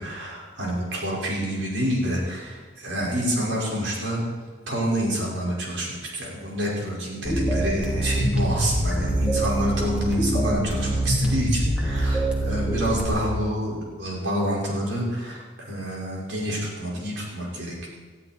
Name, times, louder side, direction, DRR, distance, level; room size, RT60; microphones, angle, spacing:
voice 1, 0.0-4.2 4.7-17.9, equal, 85° right, -3 dB, 5.6 m, -28 dB
sound 1, 7.3-13.1, right 1 dB, 5° right, 2.6 m, -24 dB
19.5 x 13.5 x 4.5 m, 1.5 s
head